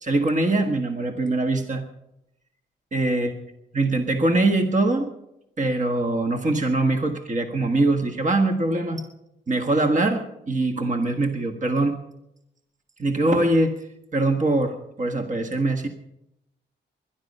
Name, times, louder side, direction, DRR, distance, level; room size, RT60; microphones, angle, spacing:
voice 1, 0.0-1.8 2.9-3.3 3.7-5.1 5.6-9.0 9.5-12.0 13.0-13.7 14.1-15.9, right 2 dB, 40° right, 6 dB, 1.6 m, -22 dB
20.5 x 11.5 x 5.5 m, 0.84 s
cardioid pair, 80°, 19 cm